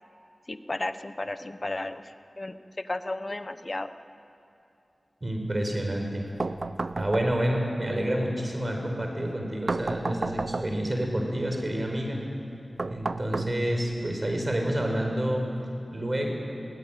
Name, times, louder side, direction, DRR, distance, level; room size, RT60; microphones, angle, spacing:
voice 1, 0.5-2.0 2.4-2.5 2.8-4.0, left 2 dB, 40° left, 11 dB, 1.0 m, -33 dB
voice 2, 5.2-6.3 6.9-12.2 12.9-15.5 15.9-16.3, right 1 dB, 35° right, 2 dB, 4.9 m, -28 dB
sound 1, 6.4-7.7 9.7-11.0 12.8-14.0, right 3 dB, 55° right, 0.6 m, -32 dB
22.0 x 17.5 x 9.2 m, 2.7 s
wide cardioid pair, 55°, 0 cm